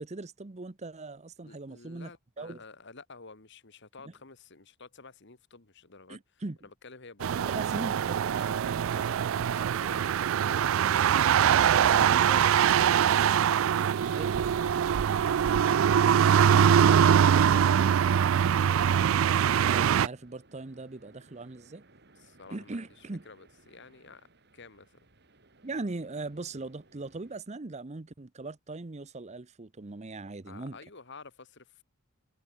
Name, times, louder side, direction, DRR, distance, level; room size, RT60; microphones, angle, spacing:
voice 1, 0.0-2.1 2.4-2.6 4.0-4.1 6.1-6.6 7.4-8.3 11.9-12.4 14.1-14.3 19.7-21.8 22.5-23.2 25.6-30.8, right 3 dB, 35° right, 0.7 m, -39 dB
voice 2, 1.4-7.5 8.3-11.2 11.6-15.6 16.1-18.4 22.2-24.3 24.5-25.1 30.5-31.8, left 4 dB, 55° left, 1.9 m, -51 dB
sound 1, 7.2-20.1, right 8 dB, 70° right, 0.3 m, -23 dB
sound 2, 9.0-27.4, right 2 dB, 50° right, 3.7 m, -61 dB
head